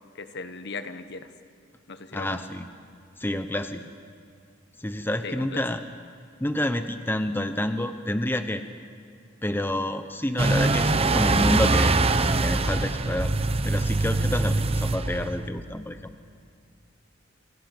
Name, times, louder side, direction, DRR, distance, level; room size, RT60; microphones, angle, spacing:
voice 1, 0.1-1.3 1.9-2.4 5.2-5.6, left 3 dB, 60° left, 10 dB, 1.3 m, -37 dB
voice 2, 2.1-2.7 3.2-3.8 4.8-5.8 6.4-8.6 9.4-12.0 12.4-13.3 13.6-16.1, left 1 dB, 10° left, 8 dB, 0.8 m, -28 dB
sound 1, 10.4-15.5, right 2 dB, 30° right, 0.8 m, -23 dB
28.0 x 17.5 x 7.8 m, 2.4 s
head